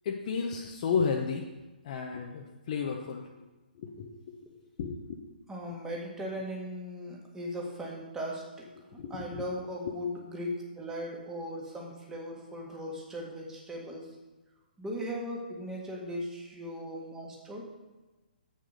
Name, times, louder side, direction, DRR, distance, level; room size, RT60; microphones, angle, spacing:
voice 1, 0.0-1.4 1.8-3.3 3.8-4.4 4.8-5.2 8.8-9.4, left 5 dB, 40° left, 0 dB, 0.9 m, -33 dB
voice 2, 5.5-8.7 8.9-14.1 14.8-17.6, equal, 10° right, -2 dB, 1.7 m, -38 dB
7.8 x 6.4 x 5.3 m, 1.2 s
figure-of-eight pair, 135°, 5 cm